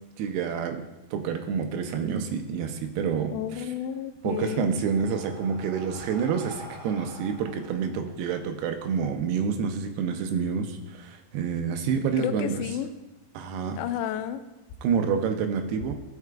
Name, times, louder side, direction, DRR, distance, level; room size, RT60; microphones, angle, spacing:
voice 1, 0.2-0.8 1.1-3.7 4.2-12.6 13.3-13.8 14.8-15.9, right 6 dB, 80° right, 5 dB, 2.5 m, -28 dB
voice 2, 3.3-4.7 12.2-12.9 13.7-14.4, left 10 dB, 90° left, 9 dB, 2.8 m, -31 dB
Breathing, 4.0-8.8, right 2 dB, 35° right, 2.1 m, -46 dB
15.5 x 5.8 x 2.3 m, 1.0 s
omnidirectional pair, 5.0 m